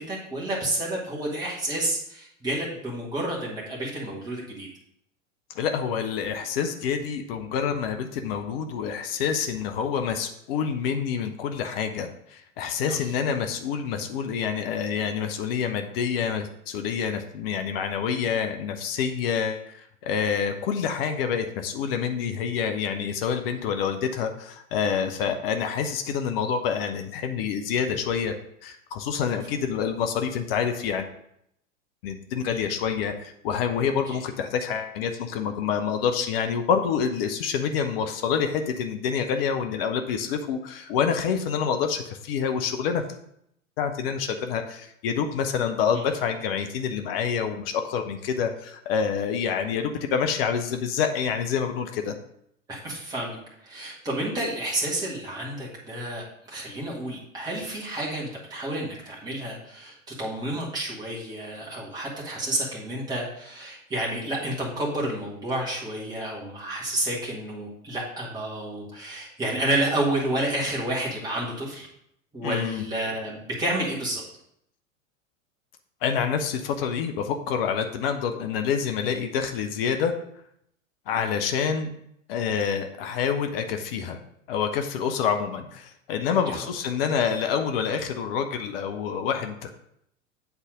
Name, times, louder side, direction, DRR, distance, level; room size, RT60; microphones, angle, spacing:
voice 1, 0.0-4.7 12.8-12.9 45.9-46.0 52.7-53.4 53.6-71.9 72.3-74.2 86.5-86.6, right 1 dB, 10° right, -6 dB, 1.9 m, -30 dB
voice 2, 5.5-28.4 28.6-31.1 32.0-43.0 43.8-52.1 72.4-72.8 76.0-80.2 81.1-81.9 82.3-84.2 84.5-89.7, left 7 dB, 45° left, 6 dB, 0.8 m, -27 dB
8.1 x 4.1 x 4.9 m, 0.73 s
figure-of-eight pair, 90°, 40 cm